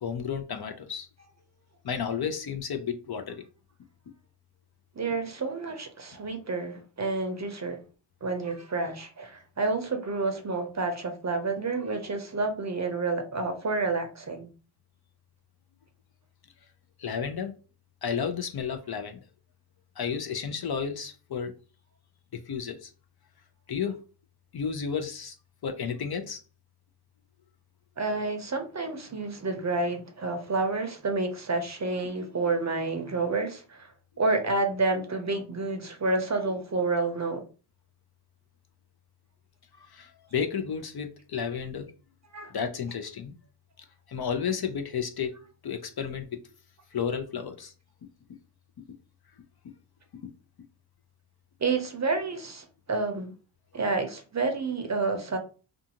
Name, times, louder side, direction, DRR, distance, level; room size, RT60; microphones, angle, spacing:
voice 1, 0.0-1.1 1.8-3.4 17.0-17.5 18.0-19.2 20.0-21.5 22.3-22.9 23.7-24.0 24.5-25.4 25.6-26.4 39.8-41.9 42.5-43.3 44.1-45.3 45.6-46.3 46.9-47.7, left 6 dB, 50° left, 0.5 m, -32 dB
voice 2, 5.0-7.8 8.2-14.5 28.0-33.9 34.2-37.4 42.3-42.5 51.6-53.3 53.7-55.4, right 3 dB, 35° right, 0.6 m, -29 dB
2.5 x 2.4 x 2.8 m
cardioid pair, 45°, 49 cm